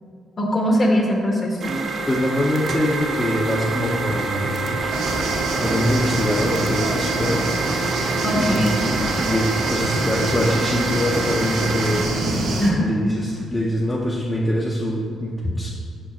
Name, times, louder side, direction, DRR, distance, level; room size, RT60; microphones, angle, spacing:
voice 1, 0.4-1.7 8.2-8.8 12.6-13.1, equal, 35° left, 0 dB, 1.2 m, -21 dB
sound 1, 1.6-12.0, right 3 dB, 50° right, 0.8 m, -27 dB
sound 2, 1.7-2.3 2.6-2.8 3.3-3.4 3.7-6.3 6.6-6.8 7.7-9.7, right 2 dB, 30° right, 0.4 m, -33 dB
voice 2, 2.0-4.6 5.6-7.4 8.4-8.8 9.2-15.7, left 1 dB, 20° left, -4 dB, 0.7 m, -24 dB
sound 3, 4.9-12.7, right 2 dB, 80° right, 0.9 m, -26 dB
5.5 x 4.5 x 4.3 m, 2.3 s
cardioid pair, 90°, 0 cm